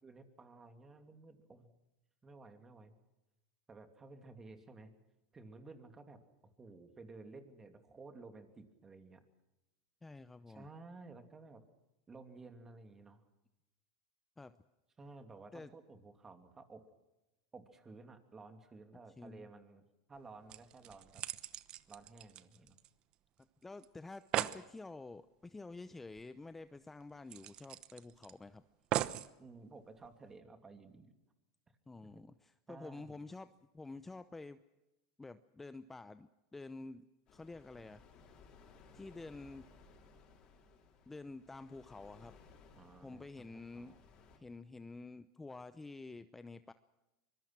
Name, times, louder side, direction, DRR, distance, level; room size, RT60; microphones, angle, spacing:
voice 1, 0.0-1.7 2.2-2.9 3.7-4.9 5.3-9.2 10.5-11.6 12.1-13.2 15.0-16.8 17.5-19.8 20.1-21.2 21.9-22.8 29.4-31.1 32.7-33.2 42.8-44.0, right 3 dB, 20° right, 7 dB, 2.8 m, -54 dB
voice 2, 10.0-10.7 14.4-14.5 15.5-15.7 19.2-19.4 23.6-28.6 31.9-34.6 35.2-37.1 37.3-38.4 38.9-39.7 41.1-42.4 43.0-43.9 44.4-46.7, left 3 dB, 10° left, 12 dB, 0.7 m, -49 dB
sound 1, 20.1-20.2 20.5-23.1 23.4-23.5 23.8-23.9 24.1-24.6 26.1-26.2 26.6-26.7 27.3-28.3 28.9-29.3 30.0-30.1, right 13 dB, 45° right, 1.0 m, -39 dB
sound 2, 37.3-44.4, left 4 dB, 40° left, 5.8 m, -61 dB
24.5 x 22.0 x 6.1 m, 1.0 s
supercardioid pair, 115°, 2 cm